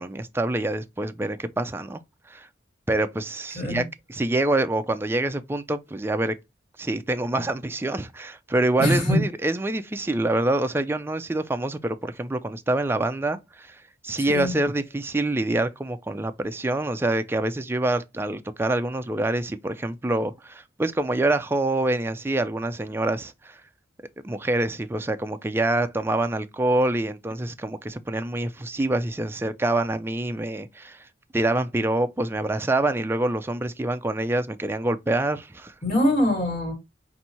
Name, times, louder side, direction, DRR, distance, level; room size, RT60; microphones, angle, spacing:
voice 1, 0.0-2.0 2.3-2.5 2.9-6.4 6.8-13.8 14.0-23.6 24.2-31.0 31.3-35.7, right 2 dB, 10° right, 0.3 m, -26 dB
voice 2, 3.5-3.9 8.8-9.2 14.3-14.5 35.8-36.7, left 1 dB, 40° left, 1.7 m, -23 dB
5.6 x 2.6 x 2.8 m
head